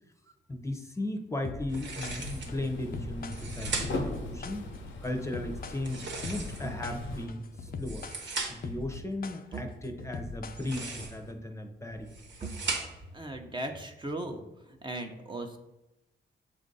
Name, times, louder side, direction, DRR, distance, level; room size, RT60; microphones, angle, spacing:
voice 1, 0.5-4.7 5.0-8.0 8.5-12.1, left 1 dB, 15° left, 4 dB, 0.7 m, -36 dB
sound 1, 1.4-11.0, left 4 dB, 50° left, 0.5 m, -42 dB
sound 2, 1.7-2.6 3.2-4.2 5.8-6.8 7.6-8.8 10.4-11.3 11.9-13.1, right 3 dB, 75° right, 1.1 m, -38 dB
sound 3, 2.0-7.3, left 2 dB, 90° left, 0.9 m, -39 dB
voice 2, 13.1-14.4 14.8-15.6, right 2 dB, 25° right, 3 dB, 0.7 m, -37 dB
7.2 x 2.5 x 5.3 m, 0.99 s
cardioid pair, 85°, 19 cm